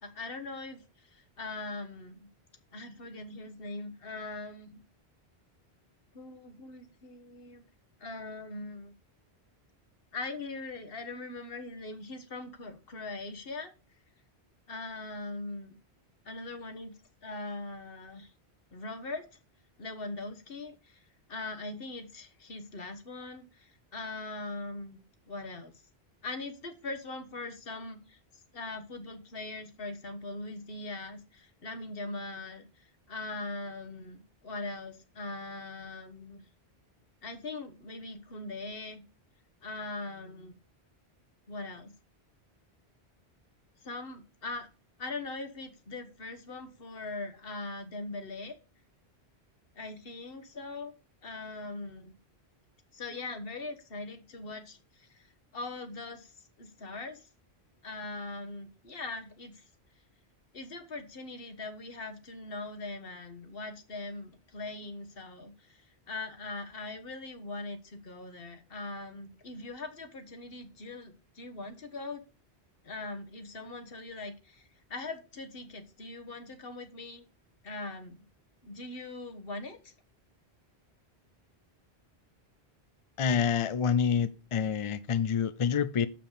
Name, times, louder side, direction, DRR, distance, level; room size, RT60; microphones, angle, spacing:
voice 1, 0.0-2.3 2.7-4.8 6.1-7.6 8.0-8.9 10.1-13.7 14.7-15.8 16.2-18.3 18.7-19.3 19.8-21.0 21.3-25.0 25.3-25.7 26.2-36.4 37.2-39.0 39.6-40.5 41.5-41.9 43.8-44.7 45.0-48.6 49.7-50.9 51.2-52.1 52.9-55.3 55.5-57.3 57.8-59.6 60.5-72.2 72.8-77.2 77.6-78.2 78.6-79.9, left 2 dB, 60° left, 1.4 m, -41 dB
voice 2, 83.2-86.1, left 7 dB, 45° left, 0.4 m, -27 dB
7.1 x 5.9 x 6.5 m
omnidirectional pair, 1.1 m